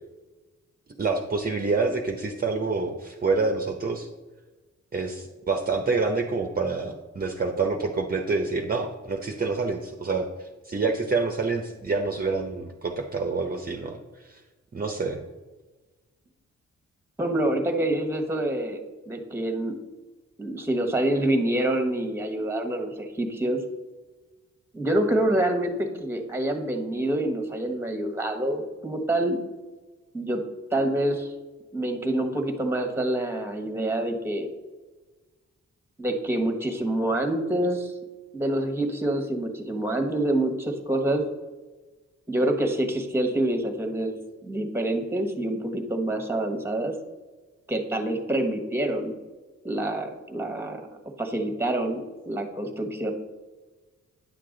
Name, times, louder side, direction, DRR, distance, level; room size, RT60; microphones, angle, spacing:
voice 1, 1.0-4.1 4.9-14.4 14.7-15.2, right 4 dB, 30° right, 3 dB, 0.8 m, -27 dB
voice 2, 17.2-18.8 19.1-19.8 20.4-23.6 24.7-29.4 30.1-30.4 30.7-31.3 31.7-34.5 36.0-37.9 38.3-41.2 42.3-46.9 47.7-49.1 49.6-53.1, right 1 dB, 10° right, 5 dB, 1.3 m, -26 dB
9.8 x 6.7 x 3.8 m, 1.2 s
wide cardioid pair, 105°, 29 cm